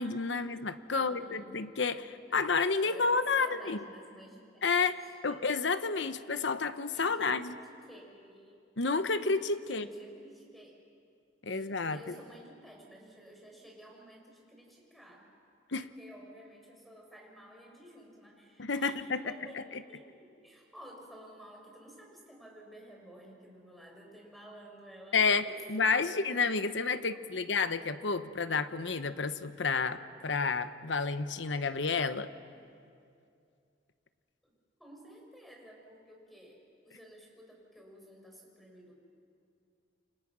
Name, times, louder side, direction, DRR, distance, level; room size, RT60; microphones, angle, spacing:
voice 1, 0.0-3.8 4.6-5.0 5.2-7.6 8.8-9.9 11.4-12.1 15.7-15.9 18.6-19.8 25.1-32.3, left 4 dB, 70° left, 11 dB, 1.0 m, -30 dB
voice 2, 0.9-1.5 2.3-2.4 2.8-3.1 3.4-4.6 5.0-5.1 6.4-6.5 6.9-7.3 7.7-8.6 9.7-10.8 11.5-15.3 16.0-25.6 34.4-34.5 34.8-38.9, right 1 dB, ahead, -1 dB, 5.9 m, -53 dB
29.0 x 25.0 x 6.2 m, 2.4 s
head